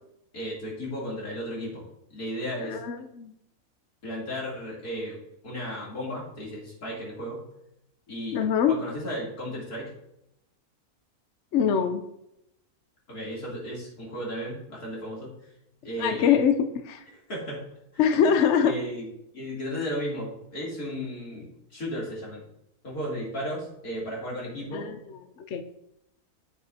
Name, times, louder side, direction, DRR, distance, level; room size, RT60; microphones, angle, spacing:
voice 1, 0.3-1.8 2.1-2.8 4.0-5.2 5.4-7.4 8.1-9.9 13.1-15.3 15.8-16.4 17.3-17.6 17.9-18.3 18.6-19.1 19.3-22.5 22.8-24.9, equal, 75° left, -5 dB, 3.6 m, -34 dB
voice 2, 2.6-3.3 8.3-8.8 11.5-12.0 16.0-16.5 16.8-17.0 18.0-18.7 24.7-25.6, left 7 dB, 60° left, 7 dB, 0.8 m, -23 dB
9.0 x 8.6 x 2.8 m, 0.80 s
omnidirectional pair, 1.6 m